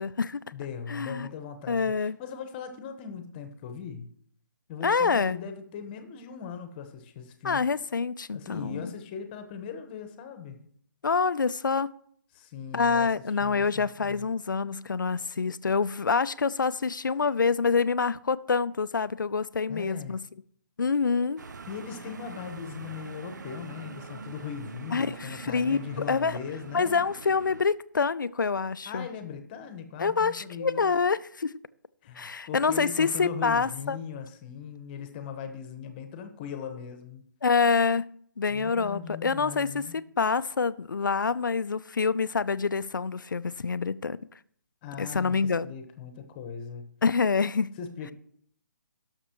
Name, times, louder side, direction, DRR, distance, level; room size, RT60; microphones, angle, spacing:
voice 1, 0.0-0.4 0.9-1.3 1.7-2.2 4.8-5.4 7.4-8.9 11.0-11.9 12.7-20.2 20.8-21.4 24.9-26.4 26.7-29.1 30.0-31.5 32.2-34.0 37.4-38.0 38.4-44.2 45.0-45.7 47.0-47.8, left 5 dB, 75° left, 0.5 m, -26 dB
voice 2, 0.5-4.1 4.7-7.6 8.3-10.7 12.3-13.1 13.4-14.3 19.7-20.2 21.7-27.0 28.8-30.9 32.0-37.3 38.5-40.0 44.8-46.9 47.8-48.1, left 7 dB, 30° left, 1.2 m, -39 dB
sound 1, 21.4-27.6, right 4 dB, 65° right, 0.8 m, -43 dB
17.5 x 6.7 x 3.1 m
figure-of-eight pair, 140°, 11 cm